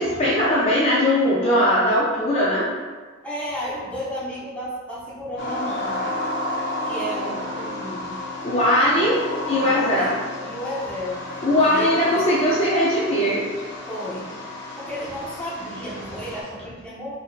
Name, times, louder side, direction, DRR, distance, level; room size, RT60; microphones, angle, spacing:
voice 1, 0.0-2.7 8.4-9.2 9.5-10.1 11.4-13.5, left 1 dB, 30° left, -7 dB, 0.5 m, -20 dB
voice 2, 3.2-6.0 6.8-8.2 9.6-10.2 10.4-11.2 11.5-12.2 13.9-14.3 14.8-17.1, equal, 5° left, -8 dB, 0.8 m, -32 dB
sound 1, 5.4-16.4, left 1 dB, 60° left, 0.8 m, -31 dB
4.8 x 2.6 x 2.4 m, 1.4 s
head